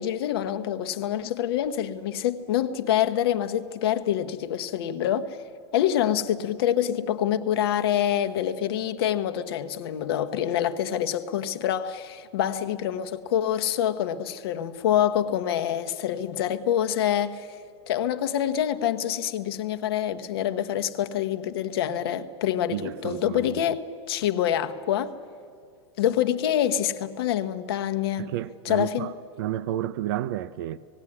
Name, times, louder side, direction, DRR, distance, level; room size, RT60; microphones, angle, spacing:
voice 1, 0.0-5.4 5.7-17.5 17.9-25.1 26.0-28.3 28.6-29.1, left 10 dB, 55° left, 1.0 m, -26 dB
voice 2, 22.7-23.6 28.2-30.8, right 13 dB, 50° right, 0.4 m, -31 dB
18.5 x 16.0 x 9.7 m
supercardioid pair, 175°, 15 cm